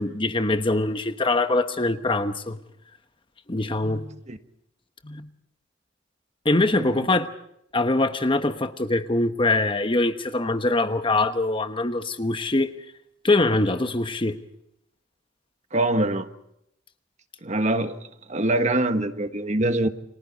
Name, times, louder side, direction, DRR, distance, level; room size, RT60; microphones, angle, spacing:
voice 1, 0.0-2.6 3.5-4.2 5.0-5.3 6.4-7.3 7.7-12.7 13.2-14.4, left 2 dB, 25° left, 1.1 m, -23 dB
voice 2, 6.7-7.1 15.7-16.3 17.4-18.0 18.3-19.9, right 1 dB, 35° right, 1.5 m, -24 dB
30.0 x 26.0 x 4.1 m
head